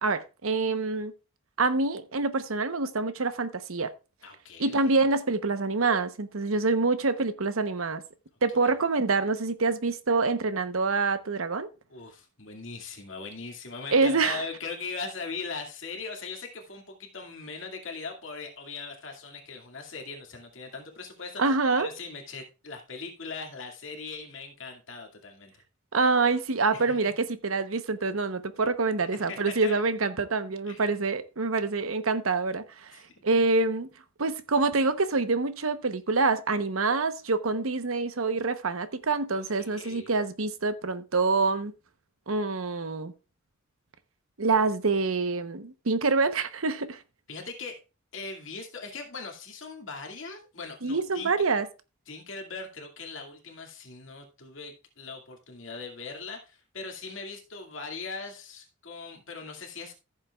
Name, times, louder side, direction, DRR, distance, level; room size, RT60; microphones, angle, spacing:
voice 1, 0.0-1.1 1.6-3.9 4.6-8.0 8.4-11.7 13.9-14.4 21.4-21.9 25.9-33.9 34.2-41.7 42.3-43.1 44.4-47.0 50.8-51.7, right 3 dB, 80° right, 0.9 m, -26 dB
voice 2, 4.2-5.0 8.6-8.7 11.9-25.5 26.7-27.1 29.3-29.8 30.7-30.9 32.9-33.2 39.3-40.1 47.3-47.8 48.1-51.5 52.1-59.9, left 4 dB, 65° left, 2.3 m, -40 dB
14.5 x 7.3 x 2.4 m
head